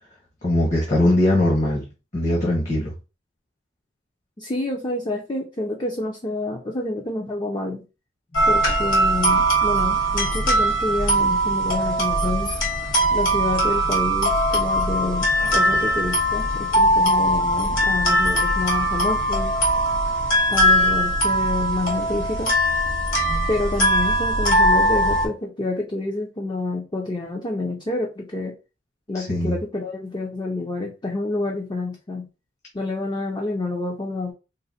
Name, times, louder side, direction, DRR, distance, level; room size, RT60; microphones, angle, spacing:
voice 1, 0.4-1.8 2.1-2.9 8.3-8.5 29.1-29.5, left 1 dB, 40° left, -3 dB, 1.2 m, -21 dB
voice 2, 4.4-7.8 8.5-12.5 13.1-19.6 20.5-22.5 23.5-28.5 29.1-32.2 32.7-34.3, left 2 dB, 25° left, 0 dB, 0.6 m, -28 dB
sound 1, 8.3-25.3, right 1 dB, 90° left, 1.9 m, -20 dB
3.9 x 2.1 x 4.1 m, 0.30 s
head